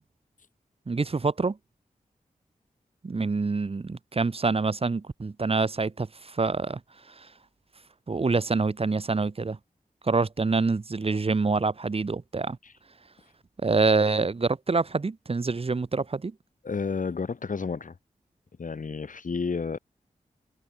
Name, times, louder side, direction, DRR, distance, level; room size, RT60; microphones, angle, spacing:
voice 1, 0.9-1.6 3.0-6.8 7.1-7.3 8.1-9.6 10.0-12.6 13.6-16.3, right 4 dB, 40° right, 1.2 m, -26 dB
voice 2, 16.6-18.0 18.6-19.8, left 5 dB, 65° left, 4.3 m, -31 dB
cardioid pair, 65°, 15 cm